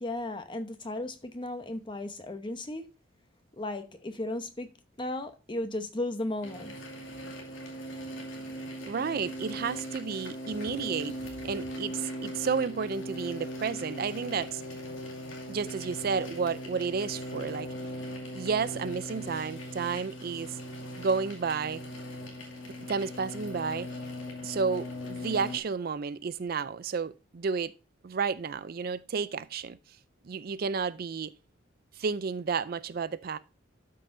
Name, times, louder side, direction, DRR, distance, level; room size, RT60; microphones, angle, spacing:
voice 1, 0.0-2.8 3.6-4.7 5.0-6.7, left 1 dB, 25° left, 0.9 m, -35 dB
sound 1, 6.4-25.6, equal, 80° left, 2.4 m, -39 dB
voice 2, 8.9-14.6 15.5-17.7 18.3-20.6 21.0-21.8 22.9-23.9 24.4-27.7 28.0-29.8 30.2-31.3 32.0-33.4, right 5 dB, 50° right, 0.4 m, -31 dB
12.5 x 5.6 x 2.6 m
head